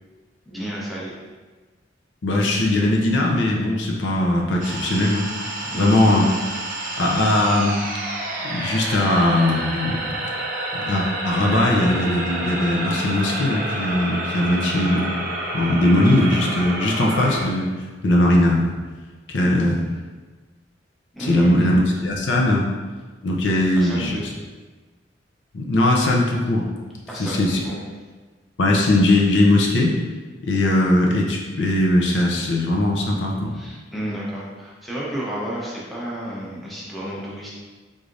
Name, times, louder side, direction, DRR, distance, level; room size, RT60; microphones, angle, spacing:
voice 1, 0.5-1.1 5.7-6.0 19.4-19.8 21.1-21.8 23.8-24.2 27.1-27.8 33.5-37.5, right 1 dB, ahead, -7 dB, 0.7 m, -31 dB
voice 2, 2.2-5.3 5.7-6.2 7.0-7.9 8.4-10.1 10.7-15.1 15.5-17.7 18.0-18.7 19.3-19.8 21.2-22.7 23.2-24.3 25.5-26.7 27.2-27.6 28.6-30.0 30.4-33.5, left 1 dB, 75° left, -2 dB, 0.6 m, -19 dB
sound 1, 4.6-17.5, right 1 dB, 45° right, 0.6 m, -29 dB
3.7 x 3.2 x 2.6 m, 1.3 s
head